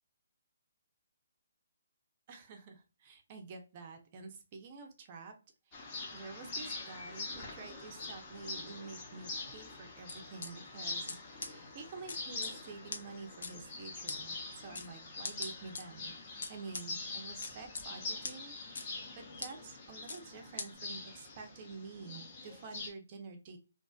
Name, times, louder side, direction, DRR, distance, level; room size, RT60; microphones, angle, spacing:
voice 1, 2.3-5.3 5.7-23.6, right 4 dB, 30° right, 4 dB, 0.5 m, -49 dB
sound 1, 5.7-22.9, left 3 dB, 30° left, 0.8 m, -44 dB
sound 2, 10.1-10.5 11.1-11.2 11.4-11.5 12.1-12.5 12.9-13.0 13.4-13.5 14.1-14.2 14.7-14.9 15.2-15.8 16.4-16.8 17.4-17.8 18.2-18.3 18.7-18.9 19.4-19.5 20.1-20.2 20.6-20.7, left 4 dB, 65° left, 0.6 m, -40 dB
2.4 x 2.4 x 2.2 m, 0.31 s
hypercardioid pair, 160°, 0 cm